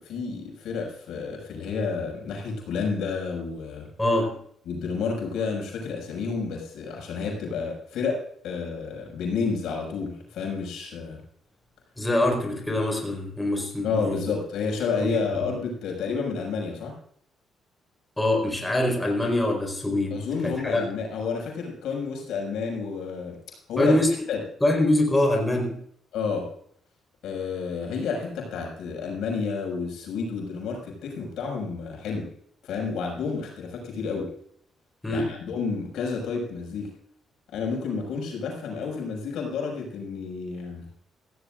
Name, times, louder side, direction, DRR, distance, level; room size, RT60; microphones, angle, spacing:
voice 1, 0.0-3.9 4.7-11.2 13.8-16.9 20.1-23.4 23.7-24.0 24.3-24.4 26.1-26.5 27.2-32.3 32.6-34.3 35.1-36.9 37.5-40.8, left 5 dB, 80° left, 0 dB, 6.0 m, -30 dB
voice 2, 4.0-4.4 12.0-14.2 15.0-15.4 18.2-20.9 23.8-24.1 24.6-25.8 35.0-35.4, left 1 dB, 10° left, 1 dB, 4.4 m, -24 dB
16.0 x 16.0 x 2.5 m, 0.64 s
cardioid pair, 90°, 0 cm